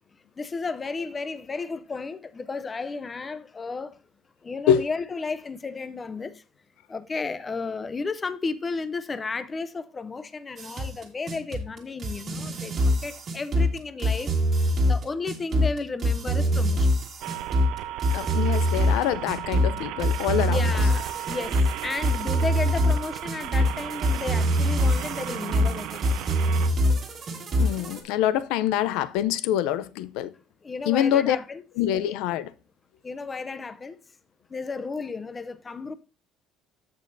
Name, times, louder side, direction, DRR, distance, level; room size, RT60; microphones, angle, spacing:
voice 1, 0.4-4.0 4.4-6.3 6.9-14.3 14.6-16.9 20.5-26.6 30.6-31.6 32.1-32.2 33.0-34.0 34.5-35.9, left 4 dB, 15° left, 0.5 m, -33 dB
sound 1, 10.6-28.0, equal, 30° right, 1.6 m, -24 dB
sound 2, 17.2-26.7, right 13 dB, 60° right, 0.5 m, -35 dB
voice 2, 18.1-20.6 27.6-30.3 30.9-31.4 31.8-32.5, left 11 dB, 90° left, 0.5 m, -25 dB
14.5 x 5.3 x 2.6 m
cardioid pair, 175°, 0 cm